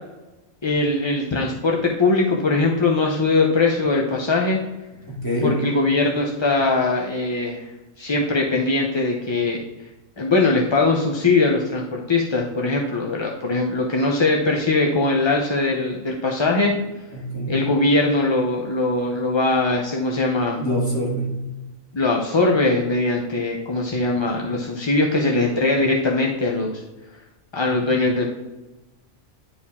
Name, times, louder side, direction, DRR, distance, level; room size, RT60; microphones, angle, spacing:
voice 1, 0.6-4.6 5.4-7.7 8.0-9.6 10.2-16.7 17.5-20.6 21.9-26.7 27.5-28.3, left 3 dB, 30° left, 0 dB, 0.5 m, -21 dB
voice 2, 5.1-5.7 17.1-17.7 20.6-21.4, equal, 15° left, -5 dB, 2.4 m, -25 dB
10.0 x 4.7 x 3.6 m, 1.1 s
omnidirectional pair, 1.4 m